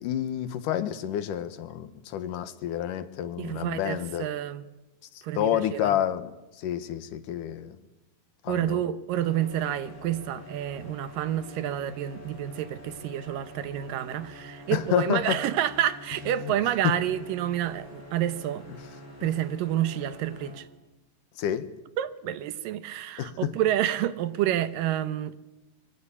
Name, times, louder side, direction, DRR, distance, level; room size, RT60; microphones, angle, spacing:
voice 1, 0.0-4.3 5.4-6.3 6.6-7.8 8.4-8.8 14.7-15.4 16.4-16.5 16.8-17.0 21.4-21.7 23.2-23.5, left 11 dB, 70° left, 2.7 m, -29 dB
voice 2, 3.4-4.7 5.2-6.0 8.5-18.7 19.2-20.7 22.0-25.4, right 12 dB, 80° right, 2.7 m, -29 dB
sound 1, 9.1-20.5, equal, 30° left, 7.9 m, -46 dB
24.0 x 23.0 x 8.5 m
omnidirectional pair, 3.9 m